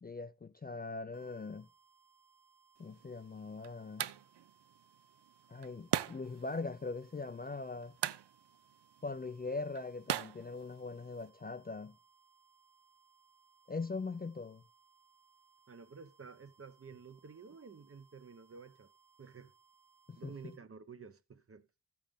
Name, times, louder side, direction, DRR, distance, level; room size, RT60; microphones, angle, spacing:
voice 1, 0.0-1.7 2.8-4.1 5.5-7.9 9.0-12.0 13.7-14.6 20.1-20.5, left 3 dB, 25° left, 0.4 m, -41 dB
sound 1, 1.1-20.6, right 6 dB, 75° right, 1.4 m, -68 dB
sound 2, 2.8-11.3, right 11 dB, 90° right, 0.6 m, -42 dB
voice 2, 15.7-18.9 19.2-19.5 20.2-21.7, right 5 dB, 35° right, 0.7 m, -51 dB
14.0 x 7.1 x 3.5 m
wide cardioid pair, 145°, 40 cm